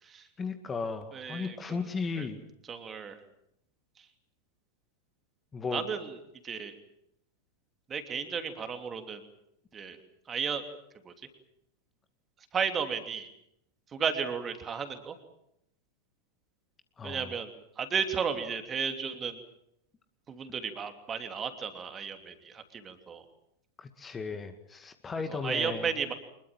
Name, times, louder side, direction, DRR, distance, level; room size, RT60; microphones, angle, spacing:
voice 1, 0.4-2.4 5.5-5.8 17.0-17.3 23.8-25.9, left 4 dB, 20° left, 8 dB, 2.0 m, -35 dB
voice 2, 1.1-1.9 2.1-2.3 2.7-3.2 4.0-4.1 5.7-6.1 6.4-6.8 7.9-9.2 9.7-10.0 10.3-10.6 11.0-11.1 12.5-13.3 13.9-15.2 17.0-17.5 17.8-19.4 20.3-23.2 25.3-26.1, right 6 dB, 20° right, 7 dB, 3.0 m, -34 dB
25.5 x 21.5 x 7.6 m, 0.77 s
figure-of-eight pair, 90°, 0 cm